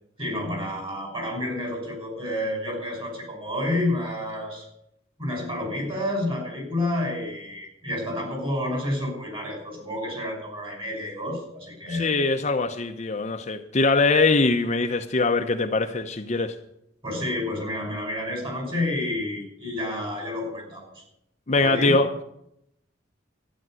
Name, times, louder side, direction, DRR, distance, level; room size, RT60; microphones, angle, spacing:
voice 1, 0.2-4.7 5.2-12.2 17.0-21.0 21.6-22.0, left 1 dB, 30° right, 5.6 m, -29 dB
voice 2, 11.9-16.6 21.5-22.2, left 3 dB, 35° left, 0.8 m, -22 dB
12.5 x 10.0 x 7.7 m
head